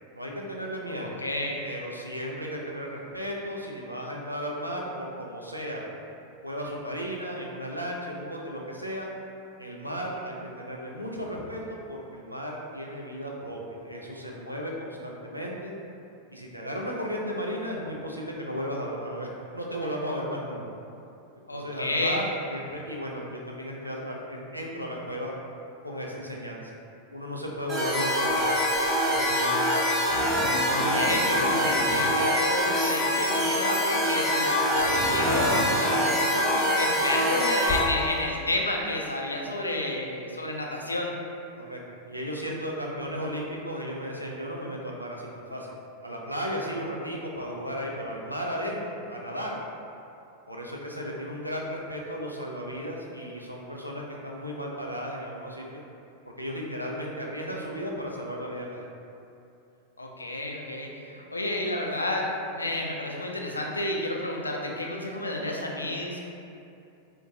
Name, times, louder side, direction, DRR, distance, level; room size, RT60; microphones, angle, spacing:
voice 1, 0.1-1.1 1.6-5.8 6.4-9.1 9.6-11.6 11.9-15.7 16.3-20.6 21.5-25.3 25.8-26.7 27.1-28.5 29.0-30.0 41.6-45.7 46.0-49.6 50.5-55.8 56.2-58.9, equal, 90° right, -2 dB, 0.4 m, -35 dB
voice 2, 0.8-1.6 21.5-22.2 30.7-41.1 60.0-66.2, left 1 dB, 80° left, 0 dB, 0.4 m, -31 dB
sound 1, 27.7-37.8, equal, 10° right, 0.9 m, -24 dB
sound 2, 28.3-28.5 28.8-29.2 30.1-32.1 32.6-34.0 34.7-36.7 37.3-38.2, left 1 dB, 20° left, 0.4 m, -35 dB
3.6 x 2.2 x 2.7 m, 2.7 s
figure-of-eight pair, 90°, 0 cm